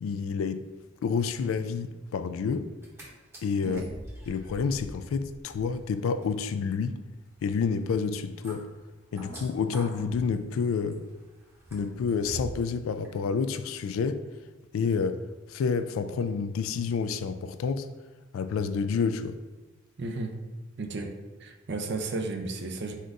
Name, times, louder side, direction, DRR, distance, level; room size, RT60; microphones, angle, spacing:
voice 1, 0.0-0.7 1.0-2.7 3.4-3.8 4.3-7.0 7.4-8.7 9.1-11.0 11.7-14.2 14.7-15.2 15.5-17.9 18.3-19.4, left 5 dB, 85° left, 0.3 m, -29 dB
sound 1, 2.7-3.0 3.3-12.7 13.0-13.1, right 1 dB, 15° right, 0.9 m, -46 dB
voice 2, 20.0-20.3 20.8-21.1 21.4-22.9, right 3 dB, 55° right, 0.5 m, -33 dB
4.2 x 2.5 x 4.6 m
head